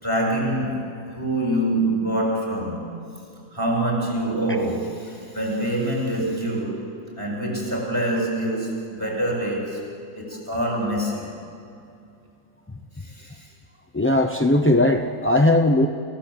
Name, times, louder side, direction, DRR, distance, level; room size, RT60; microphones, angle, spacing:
voice 1, 0.0-2.8 3.5-6.9 7.2-9.9 10.1-11.3 13.0-13.5, right 1 dB, 15° right, -2 dB, 6.8 m, -25 dB
voice 2, 13.9-15.9, left 1 dB, 15° left, 4 dB, 0.5 m, -18 dB
29.5 x 16.5 x 8.0 m, 2.6 s
omnidirectional pair, 1.5 m